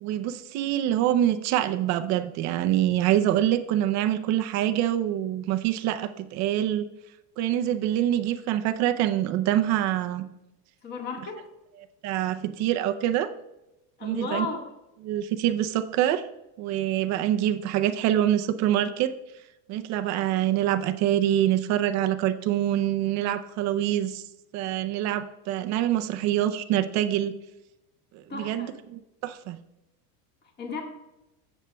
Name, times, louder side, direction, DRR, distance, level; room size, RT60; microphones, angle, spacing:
voice 1, 0.0-6.9 7.4-10.3 12.0-13.3 14.0-14.5 15.0-16.2 16.6-19.1 19.7-24.2 24.5-27.3 28.1-29.6, right 12 dB, 40° right, 9 dB, 0.5 m, -25 dB
voice 2, 10.8-11.4 14.0-14.6 28.3-28.7 30.6-30.8, left 4 dB, 20° left, 1 dB, 1.6 m, -34 dB
15.5 x 7.2 x 2.2 m, 0.93 s
cardioid pair, 160°, 46 cm